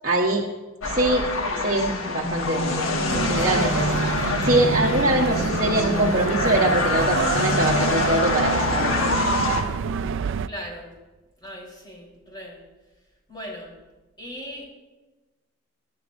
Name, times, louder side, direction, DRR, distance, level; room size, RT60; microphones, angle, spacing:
voice 1, 0.0-0.4 0.8-1.3 1.5-2.8 3.2-9.6, right 2 dB, 40° right, -3 dB, 1.1 m, -23 dB
sound 1, 0.8-9.6, left 2 dB, 75° left, 1.3 m, -25 dB
sound 2, 3.1-10.5, right 6 dB, 65° right, 0.3 m, -28 dB
voice 2, 10.5-10.9 11.4-12.6 13.3-13.8 14.2-14.7, equal, 20° left, -3 dB, 3.7 m, -38 dB
23.5 x 10.5 x 2.6 m, 1.2 s
head